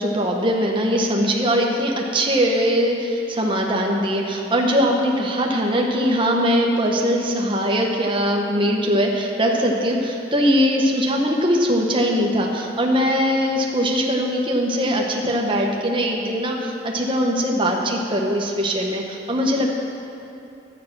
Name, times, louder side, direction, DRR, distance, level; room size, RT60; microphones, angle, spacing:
voice 1, 0.0-19.7, equal, 25° right, -1 dB, 1.3 m, -21 dB
11.5 x 9.2 x 6.1 m, 2.7 s
head